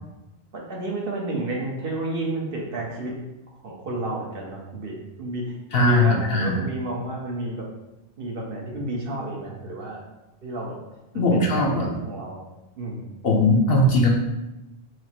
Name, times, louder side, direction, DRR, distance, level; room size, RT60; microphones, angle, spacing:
voice 1, 0.5-3.2 3.6-7.7 8.2-10.1 10.4-10.8 11.1-12.4 12.8-13.1, right 2 dB, 60° right, -2 dB, 1.0 m, -31 dB
voice 2, 5.7-6.6 11.1-11.9 13.2-14.1, left 1 dB, 65° left, 0 dB, 0.9 m, -19 dB
4.7 x 2.0 x 4.3 m, 0.95 s
omnidirectional pair, 1.1 m